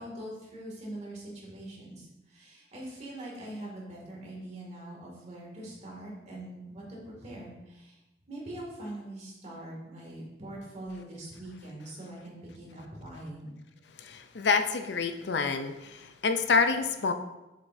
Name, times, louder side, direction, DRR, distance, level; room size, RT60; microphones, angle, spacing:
voice 1, 0.0-8.0 8.3-13.6, right 1 dB, 40° right, -3 dB, 2.4 m, -43 dB
voice 2, 14.0-17.1, left 4 dB, 75° left, 7 dB, 0.6 m, -27 dB
7.4 x 7.2 x 2.7 m, 0.99 s
head